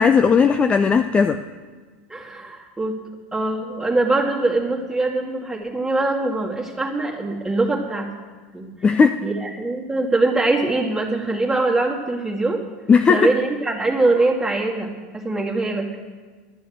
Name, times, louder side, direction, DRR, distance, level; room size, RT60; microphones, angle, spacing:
voice 1, 0.0-1.4 8.8-9.2 12.9-13.3, left 5 dB, 20° left, 8 dB, 0.5 m, -16 dB
voice 2, 2.1-3.0 3.3-8.1 8.5-8.7 9.2-12.6 13.1-15.9, right 2 dB, 5° right, -2 dB, 2.2 m, -22 dB
12.0 x 8.9 x 7.9 m, 1.5 s
supercardioid pair, 115°, 6 cm